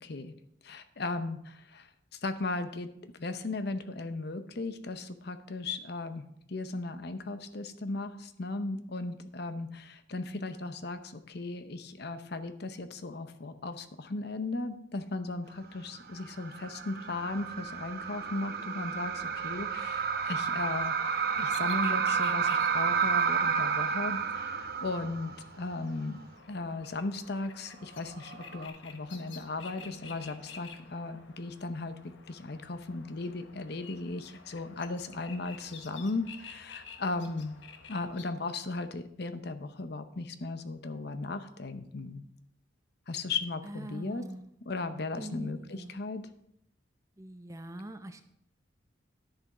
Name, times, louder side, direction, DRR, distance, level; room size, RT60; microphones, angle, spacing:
voice 1, 0.0-0.3 0.6-20.9 21.4-26.2 26.5-37.5 37.9-42.3 43.1-44.3 44.7-46.2, left 3 dB, 60° left, 10 dB, 0.8 m, -36 dB
sound 1, 16.0-25.6 25.9-26.0 28.1-28.7, right 6 dB, 55° right, 0.9 m, -31 dB
sound 2, 20.8-38.3, left 5 dB, 80° left, 1.1 m, -51 dB
voice 2, 43.6-44.5 45.1-46.0 47.2-48.2, right 1 dB, 15° right, 8 dB, 0.7 m, -43 dB
11.0 x 7.0 x 4.9 m, 0.73 s
head